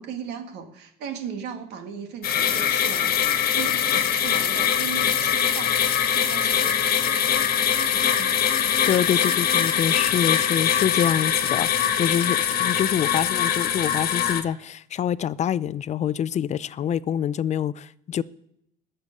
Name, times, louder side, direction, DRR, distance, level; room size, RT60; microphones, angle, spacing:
voice 1, 0.0-5.8 6.1-7.5 7.9-8.6, right 7 dB, 85° right, 1.9 m, -37 dB
sound 1, 2.2-14.4, left 9 dB, 60° left, 1.3 m, -22 dB
voice 2, 8.9-18.2, left 9 dB, 45° left, 0.4 m, -26 dB
20.0 x 6.8 x 6.5 m
cardioid pair, 110°, 17 cm